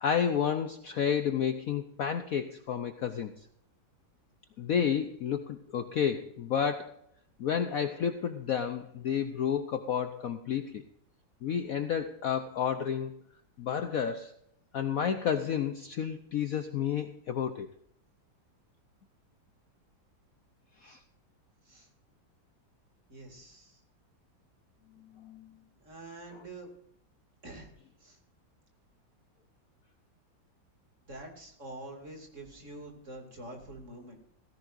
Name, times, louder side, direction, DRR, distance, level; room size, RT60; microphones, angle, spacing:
voice 1, 0.0-3.3 4.6-7.0 7.4-10.8 11.4-13.1 13.6-14.3 14.7-17.7 20.8-21.0 25.2-25.5, left 8 dB, 60° left, 8 dB, 1.0 m, -31 dB
voice 2, 23.1-23.8 25.8-26.7 27.4-27.7 28.0-28.2 31.1-34.3, right 2 dB, 40° right, 2 dB, 2.9 m, -46 dB
17.0 x 15.5 x 2.6 m, 0.71 s
omnidirectional pair, 2.1 m